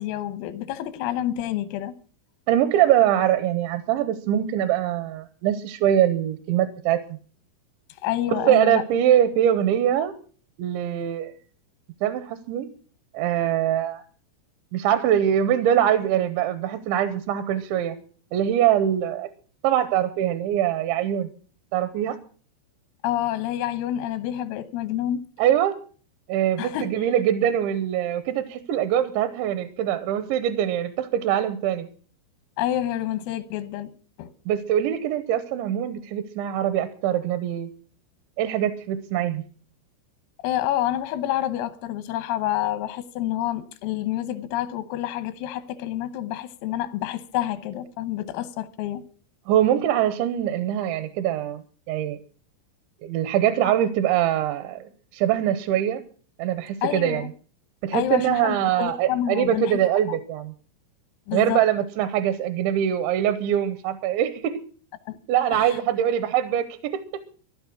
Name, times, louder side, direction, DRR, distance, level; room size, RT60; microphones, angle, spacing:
voice 1, 0.0-1.9 8.0-8.8 23.0-25.2 26.6-26.9 32.6-33.9 34.2-34.3 40.4-49.0 56.8-57.3 57.9-59.8 60.1-60.2 61.3-61.6 65.1-65.2 65.5-65.8, left 12 dB, 85° left, 3.6 m, -28 dB
voice 2, 2.5-7.0 8.3-10.1 10.6-11.3 12.0-12.7 13.1-14.0 14.7-18.0 18.3-19.3 19.6-21.3 21.7-22.2 25.4-25.8 26.3-31.9 34.5-37.7 38.4-39.4 49.5-52.2 53.0-54.8 55.1-56.0 56.4-57.3 57.8-60.5 61.3-64.6 65.3-67.0, right 11 dB, 80° right, 2.9 m, -23 dB
15.5 x 11.5 x 6.1 m
omnidirectional pair, 5.9 m